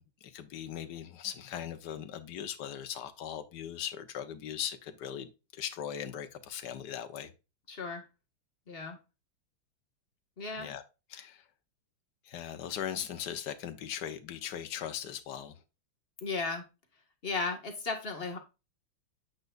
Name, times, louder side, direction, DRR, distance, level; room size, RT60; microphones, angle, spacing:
voice 1, 0.0-7.3 10.6-10.8 11.1-11.4 12.2-15.6, left 9 dB, 60° left, 1.4 m, -39 dB
voice 2, 7.7-8.0 8.7-9.0 10.4-10.7 16.2-16.6 17.2-18.4, left 4 dB, 30° left, 1.7 m, -35 dB
8.7 x 6.5 x 2.5 m
omnidirectional pair, 2.3 m